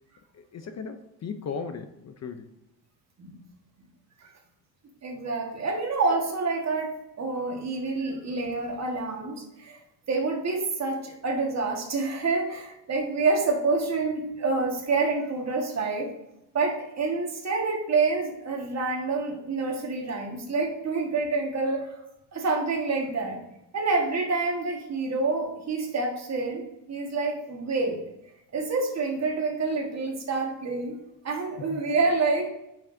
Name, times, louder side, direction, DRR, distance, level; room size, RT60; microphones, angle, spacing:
voice 1, 0.3-2.5 31.7-31.8, left 5 dB, 40° left, 8 dB, 0.6 m, -37 dB
voice 2, 5.0-9.8 10.1-16.1 16.5-22.0 22.3-23.4 23.7-26.6 26.9-28.0 28.5-31.0 31.2-32.5, right 3 dB, 40° right, 1 dB, 1.5 m, -27 dB
10.0 x 6.0 x 2.6 m, 0.88 s
cardioid pair, 125°, 40 cm